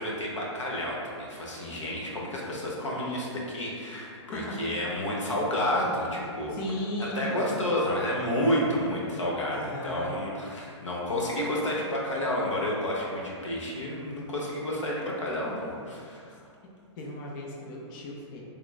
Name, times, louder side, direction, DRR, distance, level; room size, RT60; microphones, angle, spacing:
voice 1, 0.0-6.6 7.1-16.3, left 1 dB, 90° left, -4 dB, 0.6 m, -30 dB
voice 2, 4.3-4.9 6.5-7.4 9.5-10.2 17.0-18.4, left 1 dB, 45° left, -2 dB, 0.4 m, -36 dB
3.1 x 2.2 x 2.2 m, 2.3 s
hypercardioid pair, 115°, 15 cm